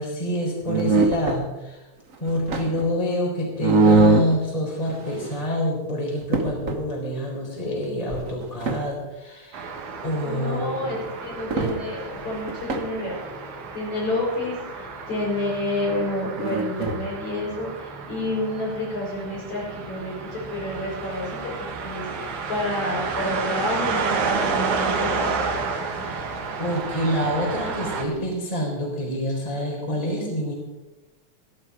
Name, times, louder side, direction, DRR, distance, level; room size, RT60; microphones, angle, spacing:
voice 1, 0.0-1.8 2.2-9.7 10.0-10.9 25.9-26.3 26.6-30.5, equal, 10° left, -2 dB, 3.8 m, -27 dB
sound 1, 0.6-1.4 2.1-2.9 3.6-4.4 4.8-5.4 5.8-5.9 6.2-6.8 8.1-8.8 11.0-11.1 11.5-11.8 12.1-12.9 16.4-17.0, right 3 dB, 50° right, 0.9 m, -22 dB
sound 2, 9.5-28.0, right 4 dB, 80° right, 3.1 m, -31 dB
voice 2, 10.2-13.2 13.7-25.4, left 1 dB, 70° left, -4 dB, 7.2 m, -29 dB
16.0 x 14.0 x 4.9 m, 1.1 s
omnidirectional pair, 3.4 m